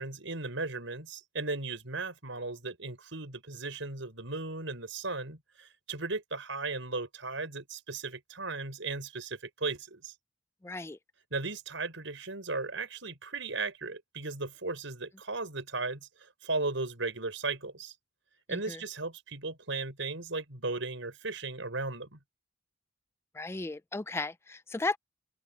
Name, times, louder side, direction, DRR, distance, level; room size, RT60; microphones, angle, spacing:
voice 1, 0.0-10.1 11.3-17.9 18.5-22.2, right 3 dB, 75° right, 5.2 m, -36 dB
voice 2, 10.6-11.0 18.5-18.8 23.3-25.0, left 3 dB, 15° left, 0.4 m, -35 dB
head